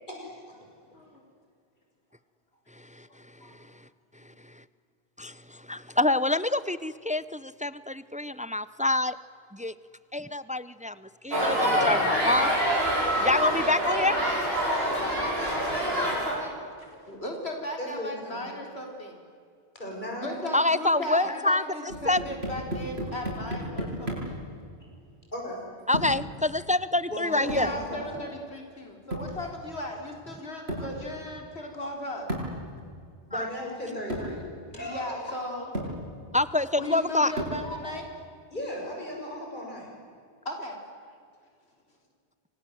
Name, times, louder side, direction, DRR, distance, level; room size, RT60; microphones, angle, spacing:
voice 1, 0.1-0.6 17.8-18.5 19.7-20.4 23.5-23.6 25.3-25.6 27.1-28.2 33.3-34.4 34.7-35.3 38.5-39.9, equal, 50° left, -1 dB, 7.4 m, -36 dB
voice 2, 5.7-9.2 9.5-9.7 10.1-10.9 11.2-12.5 13.2-14.2 20.5-21.6 22.1-22.2 25.9-27.7 33.3-33.5 36.3-37.3, left 2 dB, 10° right, 16 dB, 0.5 m, -26 dB
sound 1, 11.3-16.4, right 1 dB, 70° right, 7.1 m, -26 dB
voice 3, 14.0-16.6 16.9-19.2 20.2-24.4 27.5-32.3 34.9-35.8 36.8-38.1 40.5-40.8, left 1 dB, 90° left, 2 dB, 4.0 m, -36 dB
sound 2, 21.9-24.4 25.9-26.3 27.5-27.8 29.1-29.4 30.7-31.0 32.3-32.6 33.6-33.7 34.1-34.4 35.2-35.3 35.7-36.0 37.4-37.7, right 1 dB, 85° right, 8.0 m, -33 dB
28.5 x 25.5 x 7.8 m, 2.3 s
omnidirectional pair, 1.0 m